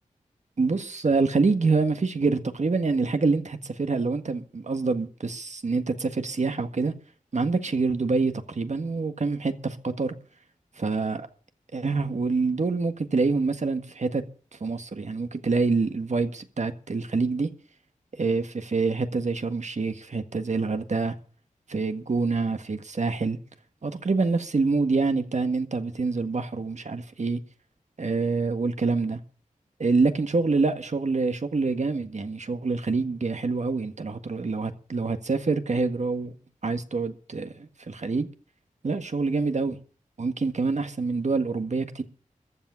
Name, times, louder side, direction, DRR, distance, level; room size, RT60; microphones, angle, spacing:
voice 1, 0.6-6.9 7.3-10.1 10.8-11.3 11.7-14.2 14.6-17.5 18.2-21.1 21.7-23.4 23.8-27.4 28.0-29.2 29.8-36.4 36.6-38.3 38.8-39.8 40.2-42.0, right 4 dB, 60° right, 1.7 m, -26 dB
14.5 x 7.3 x 9.7 m
wide cardioid pair, 70°, 14 cm